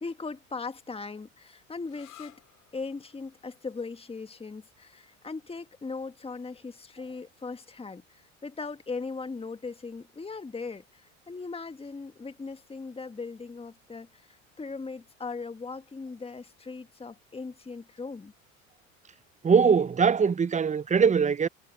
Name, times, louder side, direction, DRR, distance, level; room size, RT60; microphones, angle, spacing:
voice 1, 0.0-2.4 2.7-18.3, left 4 dB, 15° left, 1.8 m, -39 dB
sound 1, 1.8-9.2, left 14 dB, 50° left, 6.1 m, -60 dB
voice 2, 19.4-21.5, right 6 dB, 20° right, 0.9 m, -22 dB
hypercardioid pair, 75°, 40 cm